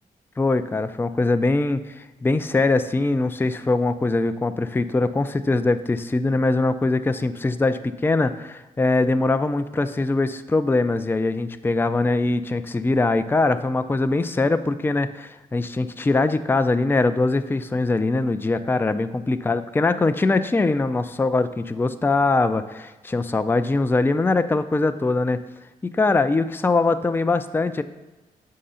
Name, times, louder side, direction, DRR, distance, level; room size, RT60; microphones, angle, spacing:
voice 1, 0.4-25.4 25.8-27.8, left 3 dB, 15° left, 10 dB, 0.4 m, -22 dB
6.7 x 3.8 x 5.5 m, 1.2 s
cardioid pair, 70°, 15 cm